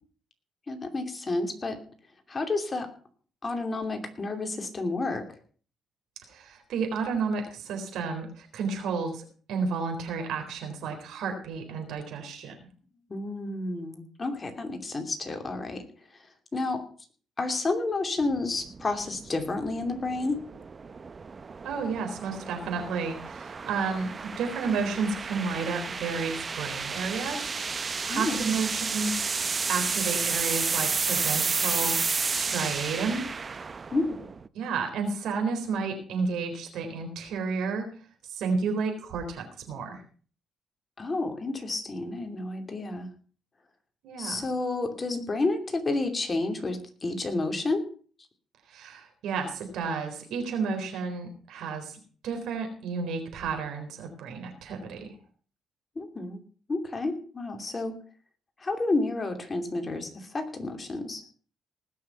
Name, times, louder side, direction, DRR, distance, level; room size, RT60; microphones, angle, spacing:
voice 1, 0.7-1.8 2.3-2.9 3.4-5.2 13.1-15.8 16.5-16.8 17.4-20.4 28.1-28.5 33.9-34.1 41.0-43.1 44.2-47.8 56.0-56.4 56.7-58.0 58.6-61.2, left 2 dB, 30° left, 5 dB, 2.8 m, -30 dB
voice 2, 6.3-12.5 21.6-27.5 27.8-29.1 29.7-33.2 34.5-37.9 38.3-40.0 44.0-44.4 48.7-52.0 52.2-55.1, right 5 dB, 80° right, 5 dB, 4.1 m, -31 dB
sound 1, 18.2-34.5, right 5 dB, 35° right, 0.7 m, -32 dB
19.5 x 6.5 x 5.8 m, 0.42 s
cardioid pair, 90°, 0 cm